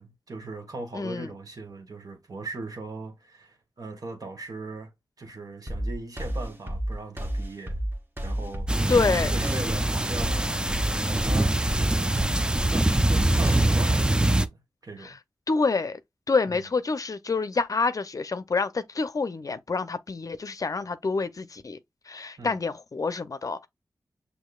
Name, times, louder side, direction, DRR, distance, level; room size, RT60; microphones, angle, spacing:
voice 1, 0.0-7.8 8.2-8.9 9.3-10.6 11.0-11.9 12.7-15.2 16.5-16.6 22.4-22.6, right 3 dB, 55° right, 1.2 m, -39 dB
voice 2, 0.9-1.3 8.9-9.3 15.0-15.2 15.5-16.0 16.3-21.8 22.1-23.7, left 4 dB, 50° left, 0.5 m, -27 dB
sound 1, 5.7-13.7, right 1 dB, 30° right, 1.1 m, -31 dB
sound 2, 8.7-14.5, right 1 dB, 10° right, 0.5 m, -24 dB
6.3 x 2.7 x 2.3 m
cardioid pair, 40°, 7 cm